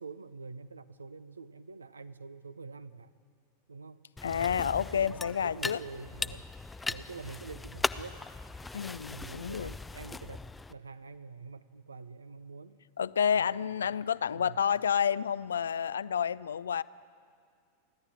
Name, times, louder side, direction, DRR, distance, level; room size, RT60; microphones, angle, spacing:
voice 1, 0.0-3.1 3.7-4.0 4.5-6.5 6.8-8.2 9.1-12.8 13.3-14.0 14.3-14.6, right 4 dB, 75° right, 14 dB, 0.7 m, -46 dB
voice 2, 4.2-5.8 8.7-9.7 13.0-16.8, left 8 dB, 70° left, 18 dB, 0.4 m, -29 dB
sound 1, 4.2-10.7, left 3 dB, 10° left, 0.5 m, -38 dB
29.0 x 11.5 x 8.8 m, 2.2 s
figure-of-eight pair, 90°, 0 cm